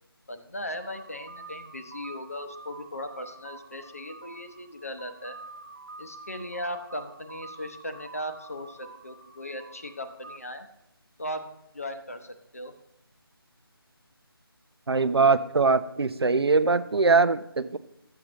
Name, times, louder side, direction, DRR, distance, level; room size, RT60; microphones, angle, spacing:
voice 1, 0.3-5.4 6.0-10.7 11.2-11.5 11.7-12.7, equal, 35° left, 7 dB, 0.7 m, -38 dB
sound 1, 0.8-10.4, right 2 dB, 35° right, 1.0 m, -47 dB
voice 2, 14.9-17.8, right 4 dB, 85° right, 13 dB, 0.6 m, -22 dB
13.0 x 7.7 x 3.0 m, 0.82 s
figure-of-eight pair, 180°, 13 cm